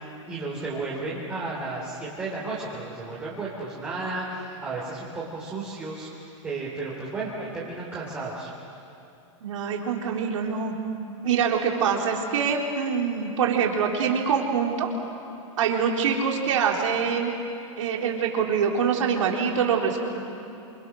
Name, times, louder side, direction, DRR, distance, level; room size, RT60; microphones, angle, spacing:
voice 1, 0.3-8.5, right 3 dB, 10° right, -6 dB, 3.6 m, -33 dB
voice 2, 9.4-10.7 11.2-14.9 15.6-17.3 17.8-20.2, right 6 dB, 75° right, 0 dB, 4.1 m, -24 dB
30.0 x 27.5 x 6.4 m, 2.8 s
supercardioid pair, 170°, 16 cm